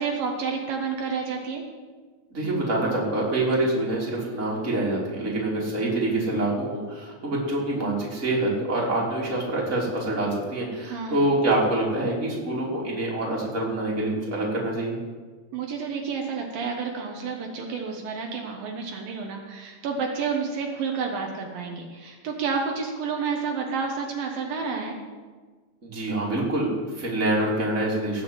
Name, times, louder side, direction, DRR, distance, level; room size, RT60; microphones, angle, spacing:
voice 1, 0.0-1.6 10.8-11.3 15.5-25.0, right 5 dB, 75° right, 2 dB, 2.9 m, -30 dB
voice 2, 2.3-15.0 25.8-28.2, right 2 dB, 20° right, -4 dB, 3.4 m, -26 dB
18.0 x 6.4 x 8.4 m, 1.4 s
omnidirectional pair, 4.2 m